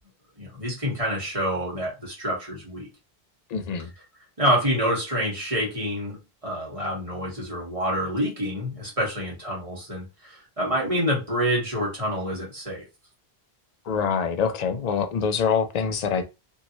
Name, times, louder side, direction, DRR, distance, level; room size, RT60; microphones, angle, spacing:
voice 1, 0.4-2.9 4.4-12.8, equal, 35° right, 1.7 m, -27 dB
voice 2, 3.5-3.9 13.9-16.2, left 6 dB, 50° left, 0.5 m, -25 dB
3.1 x 2.7 x 2.8 m
omnidirectional pair, 1.1 m